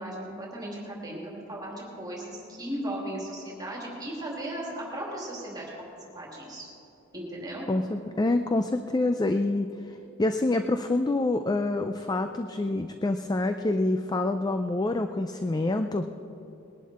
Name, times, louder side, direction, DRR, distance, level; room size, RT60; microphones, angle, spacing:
voice 1, 0.0-5.9 6.1-6.7 7.1-7.7, right 1 dB, 20° right, -3 dB, 2.8 m, -36 dB
voice 2, 7.7-16.2, left 2 dB, 20° left, 8 dB, 0.4 m, -27 dB
20.5 x 11.0 x 4.3 m, 2.9 s
head